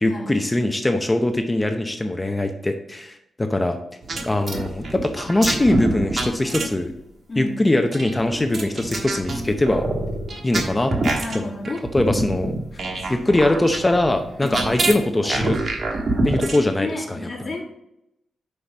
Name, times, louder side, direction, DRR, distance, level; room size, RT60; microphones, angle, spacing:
voice 1, 0.0-3.8 4.2-6.9 7.4-9.8 10.4-10.9 11.3-11.4 11.9-12.5 13.1-15.6 16.2-17.3, left 1 dB, 20° left, 6 dB, 0.7 m, -22 dB
sound 1, 4.0-6.9 7.9-16.6, right 2 dB, 55° right, 1.3 m, -26 dB
voice 2, 7.3-7.7 11.2-11.9 12.7-13.2 14.4-14.7 16.8-17.6, left 2 dB, 35° left, -1 dB, 2.0 m, -32 dB
5.8 x 5.0 x 6.0 m, 0.80 s
cardioid pair, 75°, 0 cm